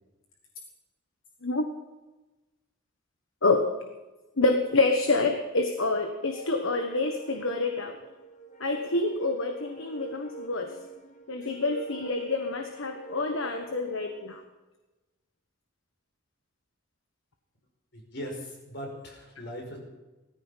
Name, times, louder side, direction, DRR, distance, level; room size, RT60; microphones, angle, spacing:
voice 1, 4.4-8.0 8.6-10.7 11.3-14.4, left 3 dB, 70° left, 5 dB, 1.3 m, -27 dB
sound 1, 6.3-14.4, right 5 dB, 35° left, 1.3 m, -45 dB
voice 2, 17.9-19.8, equal, 55° left, 1 dB, 5.5 m, -39 dB
17.0 x 14.5 x 5.8 m, 1.1 s
head